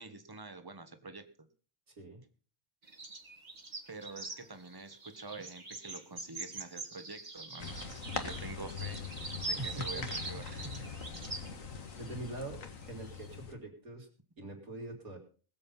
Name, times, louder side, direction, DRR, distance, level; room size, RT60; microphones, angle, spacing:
voice 1, 0.0-1.5 3.9-7.8 8.1-9.1 9.4-10.9, right 3 dB, 15° right, 9 dB, 1.4 m, -47 dB
voice 2, 1.9-2.2 9.5-11.5 12.0-12.6 12.9-14.1 14.4-15.2, right 1 dB, 80° right, 1 dB, 4.0 m, -44 dB
sound 1, 2.8-11.5 11.9-12.4 13.0-13.3, right 2 dB, 30° right, 1.7 m, -43 dB
sound 2, 7.6-13.5, left 6 dB, 65° left, 1.9 m, -42 dB
20.5 x 7.9 x 5.6 m, 0.41 s
omnidirectional pair, 1.5 m